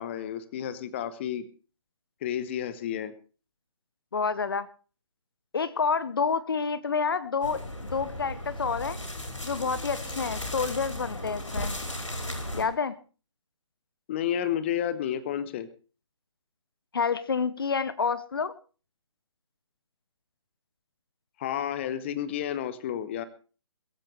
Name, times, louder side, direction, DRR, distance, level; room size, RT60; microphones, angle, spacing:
voice 1, 0.0-1.4 2.2-3.1 14.1-15.7 21.4-23.2, left 10 dB, 25° left, 14 dB, 1.0 m, -31 dB
voice 2, 4.1-4.7 5.5-9.0 9.4-11.8 12.5-12.9 16.9-18.6, left 5 dB, 50° left, 15 dB, 1.0 m, -28 dB
sound 1, 7.4-12.6, left 1 dB, 75° left, 5.2 m, -36 dB
21.5 x 14.5 x 3.3 m, 0.36 s
figure-of-eight pair, 145°, 16 cm